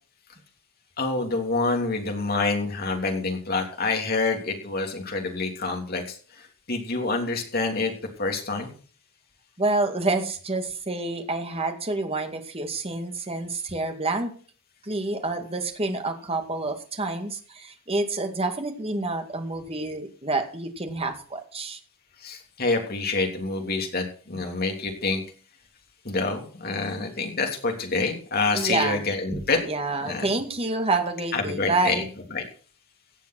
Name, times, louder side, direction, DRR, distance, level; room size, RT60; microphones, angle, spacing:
voice 1, 1.0-7.9 8.2-8.7 22.2-25.2 26.0-29.6 30.0-30.3 31.3-32.0 32.3-32.5, left 3 dB, 45° left, 3 dB, 3.3 m, -27 dB
voice 2, 9.6-14.3 14.8-21.8 28.5-29.0 29.6-32.1, right 2 dB, 30° right, 6 dB, 2.2 m, -28 dB
17.0 x 7.6 x 6.1 m, 0.42 s
head